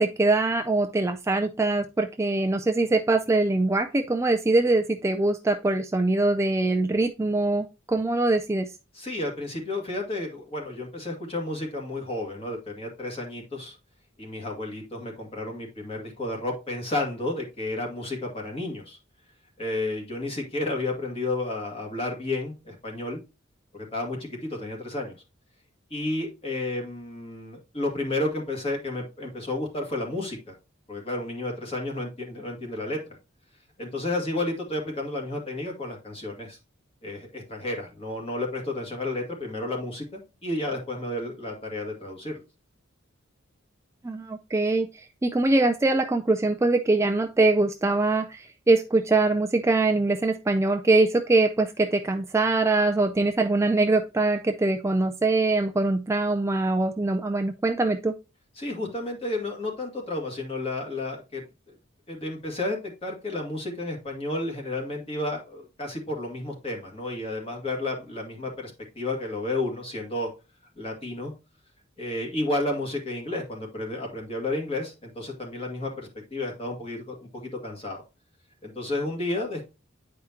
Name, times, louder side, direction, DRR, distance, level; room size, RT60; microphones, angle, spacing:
voice 1, 0.0-8.7 44.0-44.9 45.2-58.1, right 2 dB, 15° right, 0.3 m, -23 dB
voice 2, 8.9-13.8 14.2-19.0 19.6-23.2 23.7-25.1 25.9-30.6 30.9-33.0 33.8-36.6 37.0-42.4 58.6-61.7 62.1-70.3 70.8-71.3 72.0-78.0 78.6-79.7, left 2 dB, 30° left, 2.0 m, -32 dB
9.4 x 4.9 x 2.8 m
head